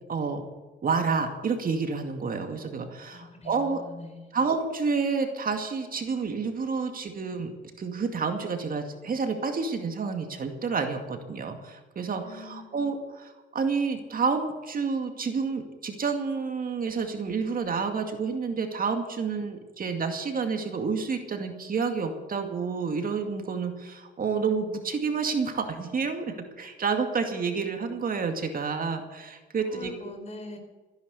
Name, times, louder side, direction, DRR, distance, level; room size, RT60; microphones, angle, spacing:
voice 1, 0.1-0.4 0.8-3.8 4.3-7.5 7.8-29.9, right 5 dB, 45° right, 5 dB, 2.3 m, -29 dB
voice 2, 3.1-4.3 12.2-12.8 29.6-30.6, left 2 dB, 35° left, 6 dB, 4.3 m, -43 dB
15.0 x 10.5 x 8.3 m, 1.3 s
cardioid pair, 90°, 20 cm